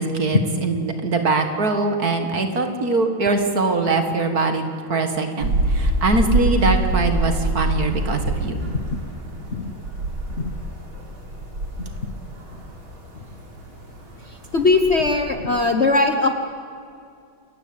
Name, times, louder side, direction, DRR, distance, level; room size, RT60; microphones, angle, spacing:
voice 1, 0.0-4.6 4.9-8.6, right 3 dB, 50° right, 6 dB, 2.3 m, -22 dB
sound 1, 5.4-15.1, right 2 dB, 90° right, 4.7 m, -26 dB
voice 2, 14.5-16.3, left 3 dB, 40° left, 6 dB, 1.1 m, -19 dB
27.5 x 15.0 x 8.8 m, 2.4 s
omnidirectional pair, 2.2 m